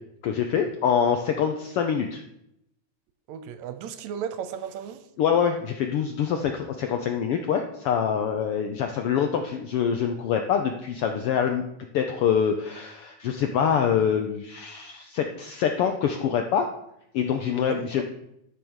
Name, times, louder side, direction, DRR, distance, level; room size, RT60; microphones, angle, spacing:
voice 1, 0.2-2.2 5.2-11.6 11.9-16.7 17.1-18.0, left 7 dB, 90° left, 5 dB, 1.2 m, -25 dB
voice 2, 3.3-5.0 17.6-18.0, right 8 dB, 75° right, 10 dB, 2.0 m, -35 dB
12.5 x 5.1 x 6.2 m, 0.80 s
omnidirectional pair, 3.4 m